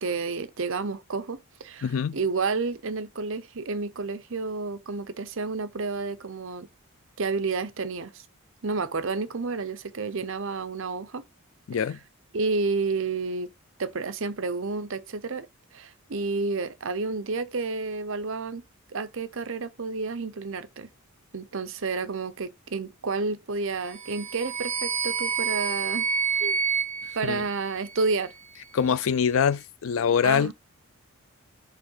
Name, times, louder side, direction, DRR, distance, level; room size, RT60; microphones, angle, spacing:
voice 1, 0.0-6.7 7.2-8.3 8.6-11.3 11.8-11.9 12.3-13.5 13.8-15.5 15.7-18.6 18.9-20.9 21.3-26.1 26.4-26.6 27.1-28.3 30.2-30.5, right 4 dB, 60° right, 0.7 m, -30 dB
voice 2, 1.8-2.2 11.7-12.0 27.2-27.4 28.7-30.5, left 7 dB, 65° left, 0.4 m, -24 dB
sound 1, 23.9-28.2, right 6 dB, 30° right, 0.5 m, -29 dB
5.2 x 3.6 x 5.5 m
head